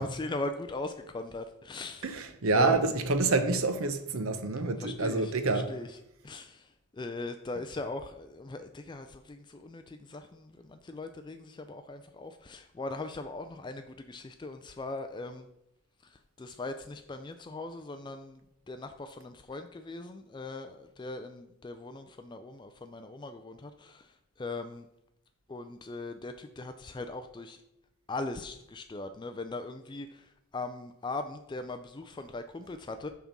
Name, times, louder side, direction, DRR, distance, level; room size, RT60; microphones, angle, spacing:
voice 1, 0.0-2.1 2.5-2.8 4.8-5.3 5.7-5.9 6.2-6.6 7.0-15.5 16.4-18.4 18.7-24.0 24.4-24.8 25.5-27.6 28.1-30.1 30.5-33.1, left 2 dB, 20° left, 0.3 m, -39 dB
voice 2, 2.0-5.7, right 3 dB, 70° right, 0.8 m, -27 dB
9.0 x 3.6 x 5.9 m
head